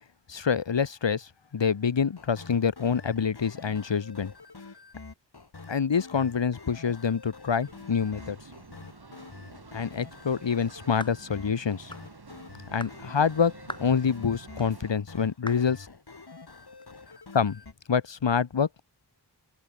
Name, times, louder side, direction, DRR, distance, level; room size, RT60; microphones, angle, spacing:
voice 1, 0.3-4.3 5.7-8.4 9.7-11.9 12.7-15.9 17.3-17.6 17.9-18.7, left 6 dB, 90° left, 1.3 m, -26 dB
sound 1, 2.2-17.7, left 4 dB, 65° left, 3.8 m, -47 dB
sound 2, 7.6-14.9, right 3 dB, 60° right, 4.7 m, -49 dB
sound 3, 11.0-11.2 11.9-12.1 12.8-13.0 13.7-13.9 14.6-14.7 15.5-15.7, left 1 dB, 10° left, 5.7 m, -39 dB
open air
wide cardioid pair, 70°, 43 cm